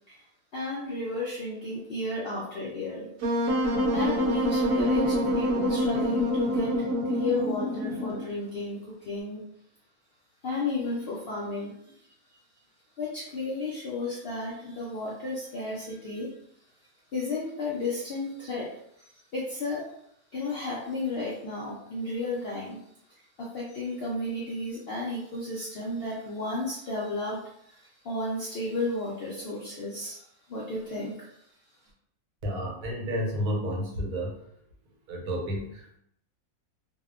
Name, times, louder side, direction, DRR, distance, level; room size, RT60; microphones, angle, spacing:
voice 1, 0.5-3.1 3.4-3.5 3.9-9.4 10.4-12.0 13.0-16.4 17.1-18.7 19.0-19.8 20.3-22.8 23.1-31.3, left 2 dB, 75° left, -5 dB, 0.5 m, -33 dB
Wind instrument woodwind instrument, 3.2-8.3, equal, 70° right, 1.0 m, -26 dB
voice 2, 32.4-34.4 35.1-36.0, equal, 90° right, -1 dB, 1.2 m, -31 dB
2.7 x 2.0 x 2.4 m, 0.72 s
omnidirectional pair, 1.6 m